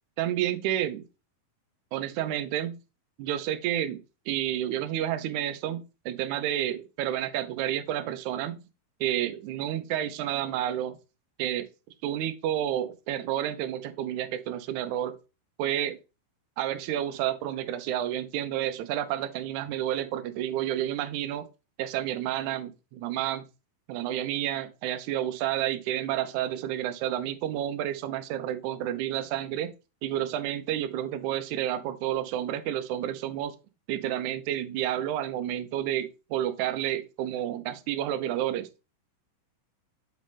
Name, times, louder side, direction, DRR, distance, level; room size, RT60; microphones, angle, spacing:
voice 1, 0.2-1.0 1.9-2.8 3.2-4.0 4.3-8.6 9.0-11.0 11.4-11.7 12.0-15.1 15.6-16.0 16.6-21.5 21.8-23.4 23.9-29.7 30.0-33.5 33.9-38.7, right 11 dB, 75° right, 1.8 m, -30 dB
8.2 x 3.9 x 3.5 m
omnidirectional pair, 4.2 m